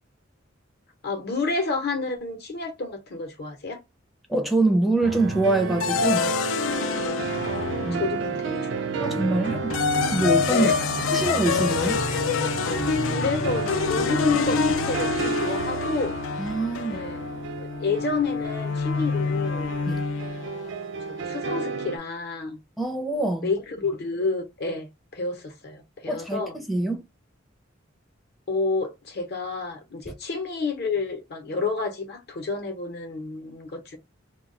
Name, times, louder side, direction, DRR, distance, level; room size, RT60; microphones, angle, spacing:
voice 1, 1.0-3.8 7.2-9.6 10.5-10.7 11.1-11.2 12.1-12.2 13.0-16.2 16.9-17.2 17.6-19.7 20.4-20.7 21.1-22.6 23.4-26.6 28.5-34.0, left 3 dB, 55° left, 0.7 m, -30 dB
voice 2, 4.3-6.3 7.9-8.0 9.0-9.8 10.1-10.7 11.1-12.0 16.4-17.0 19.9-20.0 22.8-23.5 26.1-27.0, right 2 dB, ahead, 0.4 m, -24 dB
sound 1, 5.0-22.0, right 5 dB, 65° right, 0.4 m, -32 dB
sound 2, 5.8-8.4 9.4-20.6, left 5 dB, 75° left, 0.3 m, -27 dB
2.2 x 2.2 x 3.7 m
head